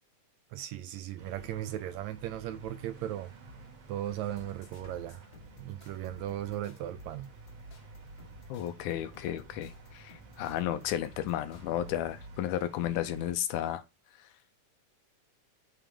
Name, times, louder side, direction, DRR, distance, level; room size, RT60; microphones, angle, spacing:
voice 1, 0.5-3.3 3.9-5.3 5.6-7.3, right 12 dB, 80° right, 1.7 m, -37 dB
sound 1, 1.2-13.3, right 2 dB, 60° right, 2.7 m, -51 dB
sound 2, 4.2-11.7, left 2 dB, 50° left, 1.6 m, -58 dB
voice 2, 8.5-13.8, left 12 dB, 85° left, 2.2 m, -33 dB
7.2 x 3.3 x 5.0 m
omnidirectional pair, 3.5 m